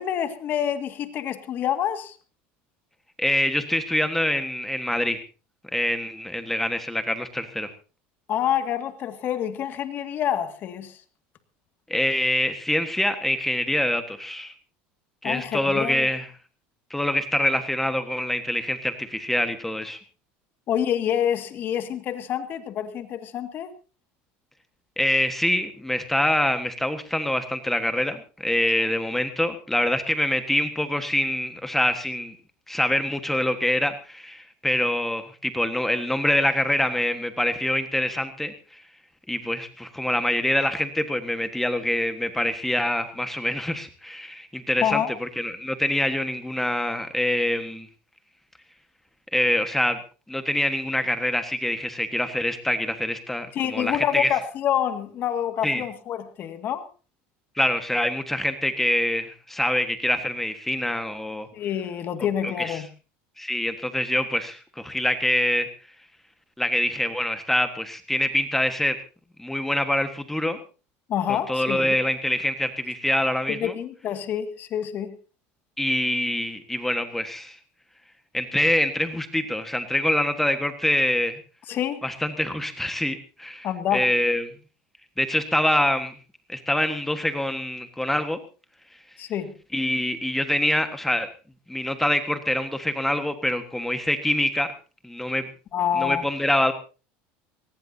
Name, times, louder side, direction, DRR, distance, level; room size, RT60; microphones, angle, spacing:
voice 1, 0.0-2.2 8.3-11.0 15.2-16.1 20.7-23.7 44.8-45.1 53.5-56.8 61.5-62.9 71.1-72.0 73.5-75.1 81.7-82.0 83.6-84.1 89.2-89.5 95.7-96.3, left 10 dB, 45° left, 9 dB, 2.0 m, -27 dB
voice 2, 3.2-5.2 5.7-7.7 11.9-14.5 15.2-16.3 16.9-20.0 25.0-32.3 32.7-38.8 39.3-47.9 49.3-50.0 50.3-54.3 55.6-55.8 57.5-61.5 62.4-62.8 63.4-65.7 66.6-69.0 69.4-70.6 71.3-73.7 75.8-77.6 78.3-81.4 82.0-83.7 83.9-84.5 85.2-86.1 86.5-88.4 89.7-91.3 91.7-94.7 95.0-95.5 95.9-96.7, left 1 dB, 5° left, 8 dB, 1.4 m, -25 dB
22.0 x 19.5 x 2.8 m, 0.35 s
supercardioid pair, 130°, 5 cm